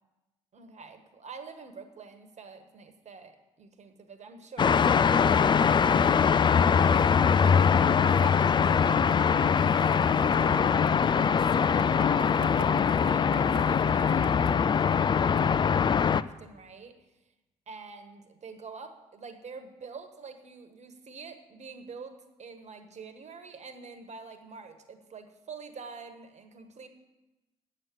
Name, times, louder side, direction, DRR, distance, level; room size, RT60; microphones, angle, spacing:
voice 1, 0.5-9.8 10.1-17.0 17.7-26.9, right 5 dB, 45° right, 8 dB, 1.4 m, -47 dB
sound 1, 4.6-16.2, left 6 dB, 30° left, 0.4 m, -22 dB
Skateboard, 5.2-15.0, right 8 dB, 60° right, 0.9 m, -47 dB
8.6 x 7.4 x 8.5 m, 1.0 s
figure-of-eight pair, 45°, 17 cm